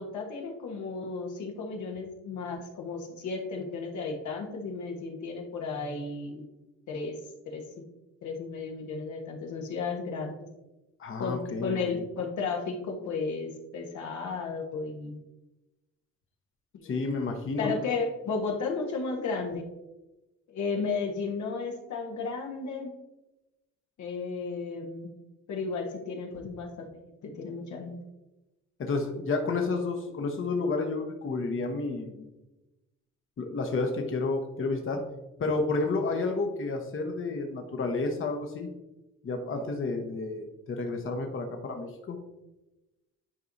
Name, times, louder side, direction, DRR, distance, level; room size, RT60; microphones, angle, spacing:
voice 1, 0.0-6.4 6.9-7.2 7.5-7.6 8.2-10.5 11.2-15.2 16.7-16.9 17.6-19.6 20.5-22.9 24.0-25.1 25.5-26.9 27.2-28.0, left 4 dB, 70° left, 1 dB, 1.3 m, -34 dB
voice 2, 11.0-12.0 16.8-17.7 28.8-32.3 33.4-35.0 35.4-38.7 39.2-42.2, left 3 dB, 45° left, 3 dB, 1.0 m, -31 dB
10.0 x 4.6 x 2.7 m, 1.0 s
cardioid pair, 90°, 30 cm